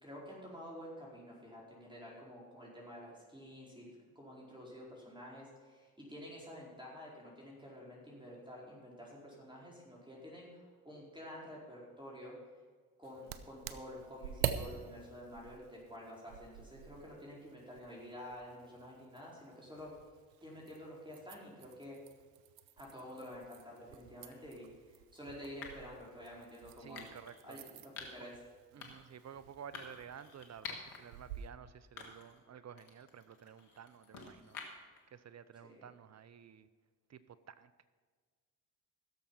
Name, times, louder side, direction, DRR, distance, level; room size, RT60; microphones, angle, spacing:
voice 1, 0.0-12.4 13.0-19.9 20.4-22.0 22.8-27.1 27.4-28.4 35.6-35.8, equal, 10° right, -4 dB, 4.5 m, -50 dB
sound 1, 13.0-31.5, right 10 dB, 80° right, 0.8 m, -46 dB
sound 2, 24.3-24.5 25.6-25.9 26.9-27.4 28.0-28.3 28.8-29.1 29.7-31.0 31.4-31.5 32.0-32.4 32.8-35.0, left 5 dB, 85° left, 1.8 m, -49 dB
voice 2, 26.8-27.6 28.7-36.7 37.1-37.8, right 8 dB, 40° right, 15 dB, 0.7 m, -53 dB
16.0 x 7.1 x 5.6 m, 1.5 s
hypercardioid pair, 50°, 42 cm